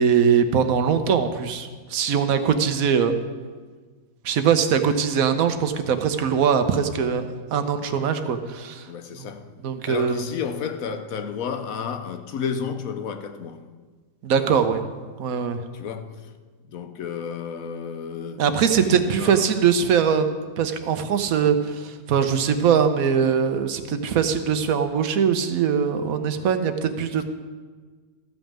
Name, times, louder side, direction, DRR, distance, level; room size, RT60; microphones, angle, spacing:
voice 1, 0.0-3.1 4.2-8.9 9.6-10.2 14.2-14.8 15.2-15.6 18.4-27.2, right 7 dB, 80° right, 1.2 m, -21 dB
voice 2, 8.9-9.5 9.9-13.7 15.7-16.3 16.7-19.4 27.2-27.3, left 7 dB, 75° left, 1.2 m, -32 dB
14.0 x 5.3 x 7.4 m
omnidirectional pair, 1.5 m